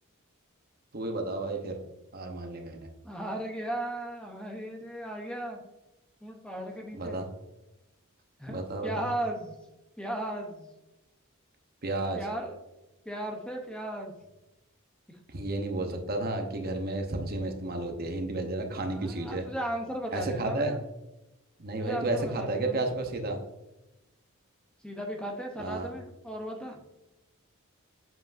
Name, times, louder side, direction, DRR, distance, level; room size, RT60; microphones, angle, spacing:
voice 1, 0.9-1.8 2.1-2.9 7.0-7.3 8.5-8.9 11.8-12.2 15.3-19.4 20.1-20.7 21.6-23.4 25.6-25.9, right 2 dB, 45° right, 4 dB, 0.8 m, -32 dB
voice 2, 3.0-5.6 6.2-7.2 8.4-9.5 10.0-10.7 12.1-12.5 13.1-14.1 18.9-20.8 21.8-22.9 24.8-26.8, right 1 dB, 5° left, 2 dB, 0.7 m, -36 dB
7.5 x 5.1 x 2.5 m, 0.96 s
head